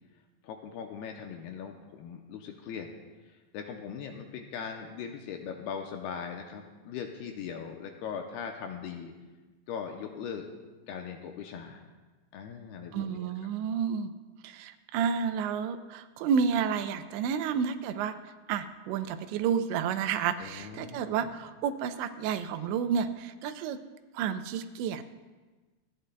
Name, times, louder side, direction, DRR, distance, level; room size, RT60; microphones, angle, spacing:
voice 1, 0.4-2.9 3.3-9.1 9.7-10.5 10.9-11.8 12.3-13.5 20.4-21.3, left 7 dB, 80° left, 3 dB, 2.4 m, -40 dB
voice 2, 12.9-14.1 14.4-18.2 18.5-23.8 24.1-25.1, right 7 dB, 90° right, 10 dB, 3.0 m, -30 dB
26.5 x 11.0 x 2.2 m, 1.3 s
omnidirectional pair, 5.0 m